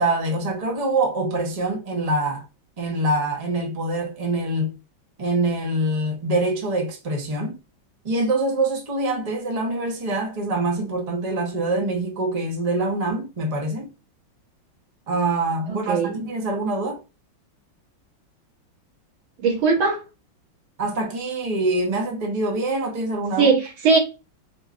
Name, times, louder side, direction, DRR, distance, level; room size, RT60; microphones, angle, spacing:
voice 1, 0.0-2.4 2.8-4.8 5.2-7.5 8.0-13.9 15.1-17.0 20.8-23.5, right 2 dB, 30° right, 0.6 m, -25 dB
voice 2, 15.7-16.2 19.4-20.0 23.4-24.0, right 4 dB, 85° right, 2.1 m, -19 dB
4.4 x 3.1 x 2.4 m
omnidirectional pair, 2.2 m